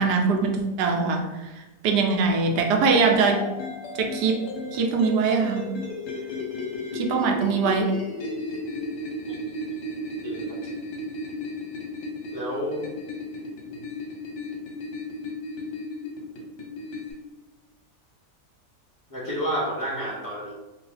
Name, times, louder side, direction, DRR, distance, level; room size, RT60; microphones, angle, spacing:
voice 1, 0.0-3.4 4.0-5.7 6.9-7.9, right 4 dB, 80° right, 2 dB, 1.1 m, -23 dB
sound 1, 3.1-17.1, left 2 dB, 80° left, 1.4 m, -34 dB
voice 2, 10.2-10.6 12.3-12.8 13.7-13.8 19.1-20.5, equal, 25° left, -7 dB, 0.4 m, -30 dB
3.0 x 2.6 x 3.2 m, 1.1 s
omnidirectional pair, 1.8 m